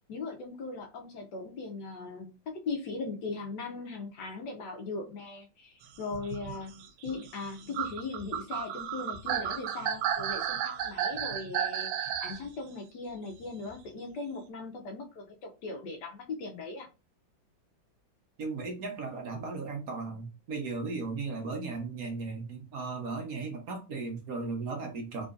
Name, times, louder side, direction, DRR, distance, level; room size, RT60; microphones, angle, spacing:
voice 1, 0.1-16.9, left 3 dB, 70° left, 1.2 m, -39 dB
sound 1, 6.0-12.4 13.7-13.8, right 9 dB, 80° right, 1.3 m, -33 dB
voice 2, 18.4-25.3, right 4 dB, 55° right, 1.1 m, -36 dB
3.7 x 3.1 x 2.5 m
omnidirectional pair, 2.2 m